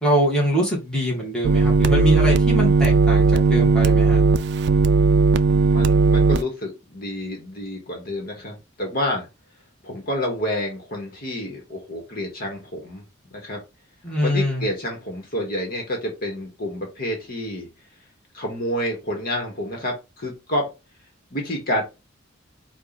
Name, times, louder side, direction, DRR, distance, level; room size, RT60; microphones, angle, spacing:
voice 1, 0.0-4.2 14.0-14.7, equal, 5° left, 1.5 m, -23 dB
sound 1, 1.4-6.4, right 4 dB, 60° right, 0.4 m, -17 dB
voice 2, 5.7-9.3 9.8-13.0 13.3-13.6 14.2-17.7 18.3-20.7 21.3-21.8, left 1 dB, 50° left, 1.3 m, -29 dB
4.5 x 2.5 x 4.0 m
head